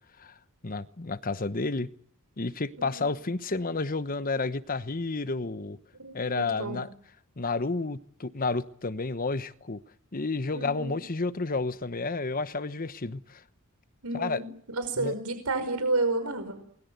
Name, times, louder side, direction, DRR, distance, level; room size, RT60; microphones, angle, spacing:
voice 1, 0.6-1.9 2.4-5.8 6.1-6.9 7.4-9.8 10.1-13.4 14.1-14.4 15.0-15.1, left 3 dB, 40° left, 1.0 m, -31 dB
voice 2, 6.0-6.8 10.5-11.0 14.0-16.6, right 2 dB, 85° right, 5.2 m, -31 dB
28.0 x 21.0 x 8.1 m
head